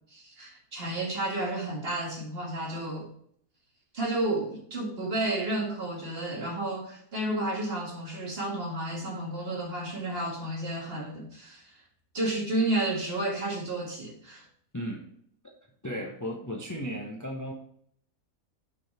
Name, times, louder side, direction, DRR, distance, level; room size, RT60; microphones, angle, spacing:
voice 1, 0.1-3.1 3.9-11.7 12.1-14.4, right 1 dB, 45° right, -1 dB, 2.1 m, -31 dB
voice 2, 14.7-15.1 15.8-17.5, equal, 15° left, 1 dB, 0.8 m, -35 dB
6.2 x 5.4 x 4.4 m, 0.65 s
omnidirectional pair, 1.5 m